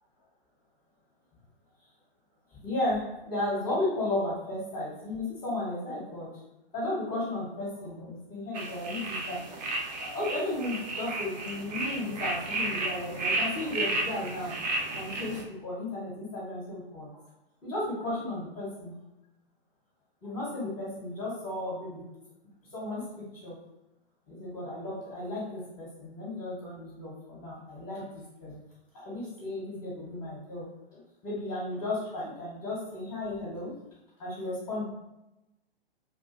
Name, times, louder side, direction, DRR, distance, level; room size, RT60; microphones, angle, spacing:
voice 1, 2.5-6.3 6.7-9.4 9.9-14.5 15.0-17.2 17.6-18.9 20.2-22.1 22.7-23.6 24.3-28.6 28.9-33.8 34.2-34.8, left 1 dB, 10° left, -7 dB, 0.6 m, -34 dB
sound 1, 8.5-15.4, right 2 dB, 45° right, 0.4 m, -33 dB
2.3 x 2.3 x 2.4 m, 0.94 s
figure-of-eight pair, 120°, 31 cm